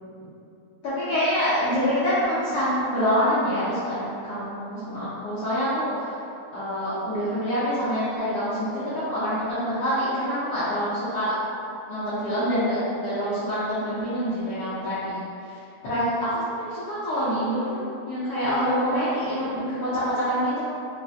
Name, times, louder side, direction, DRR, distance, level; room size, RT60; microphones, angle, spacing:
voice 1, 0.8-6.1 6.5-11.3 11.9-15.1 15.4-20.7, equal, 75° left, -14 dB, 1.2 m, -26 dB
4.9 x 2.1 x 2.7 m, 2.7 s
omnidirectional pair, 3.3 m